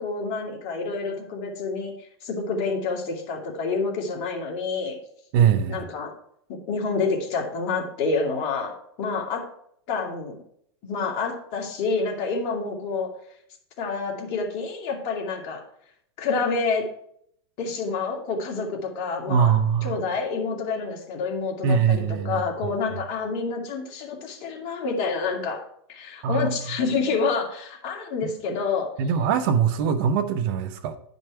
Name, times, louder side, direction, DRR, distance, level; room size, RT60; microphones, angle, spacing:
voice 1, 0.0-1.9 2.2-5.0 5.7-6.1 6.7-9.4 9.9-10.4 10.8-13.1 13.8-15.6 16.2-16.9 17.6-25.6 25.9-28.9, left 4 dB, 45° left, 1 dB, 2.4 m, -28 dB
voice 2, 5.3-5.8 19.3-20.0 21.6-22.7 26.2-26.5 29.0-31.0, right 7 dB, 55° right, 9 dB, 1.0 m, -22 dB
10.0 x 5.4 x 4.7 m, 0.69 s
hypercardioid pair, 120°, 13 cm